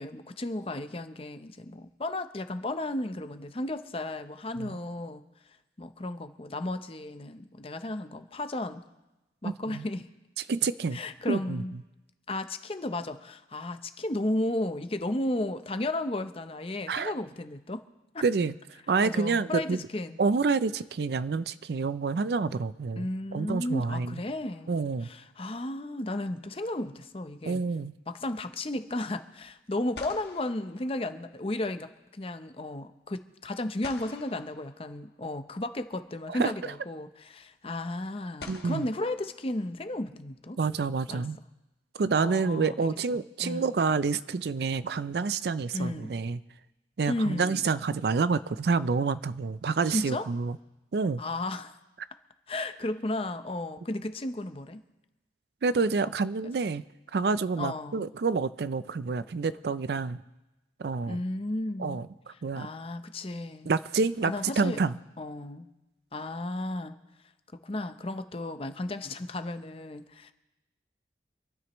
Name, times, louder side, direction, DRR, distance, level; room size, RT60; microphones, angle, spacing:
voice 1, 0.0-5.2 5.8-8.8 9.4-10.1 10.9-11.7 12.3-17.8 18.1-18.2 19.0-20.2 23.0-24.7 25.0-27.6 28.1-40.6 41.1-41.3 42.1-43.7 45.7-46.1 47.1-47.6 49.9-50.3 51.2-51.8 52.5-54.8 57.6-58.1 61.0-62.0 62.5-63.7 64.2-64.8 65.2-65.7 66.1-67.0 67.6-70.3, left 1 dB, 30° left, 9 dB, 0.7 m, -34 dB
voice 2, 9.4-9.8 10.5-11.0 11.3-11.6 16.9-17.1 18.2-18.5 18.9-19.8 20.2-24.1 24.7-25.1 27.4-27.9 36.3-36.5 38.5-38.9 40.6-41.4 42.0-46.4 47.0-50.6 50.9-51.2 55.6-56.8 57.1-60.2 60.8-61.2 61.8-62.1 62.4-62.7 63.7-65.0, right 4 dB, 65° right, 15 dB, 0.4 m, -28 dB
sound 1, 24.5-25.3 29.4-29.5 29.9-31.7 33.8-35.4 36.8-36.9 38.4-40.0, left 4 dB, 65° left, 1.4 m, -48 dB
26.5 x 12.5 x 3.0 m, 1.0 s
head